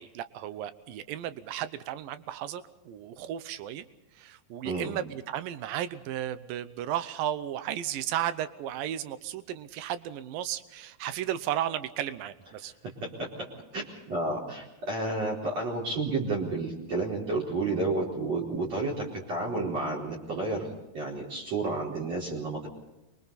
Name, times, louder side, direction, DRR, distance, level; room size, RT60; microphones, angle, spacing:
voice 1, 0.0-3.8 4.2-12.7, right 11 dB, 80° right, 13 dB, 2.1 m, -34 dB
voice 2, 13.0-13.5 13.7-20.7 20.9-22.7, right 2 dB, 35° right, -4 dB, 5.3 m, -31 dB
28.0 x 24.0 x 4.2 m, 0.98 s
omnidirectional pair, 5.1 m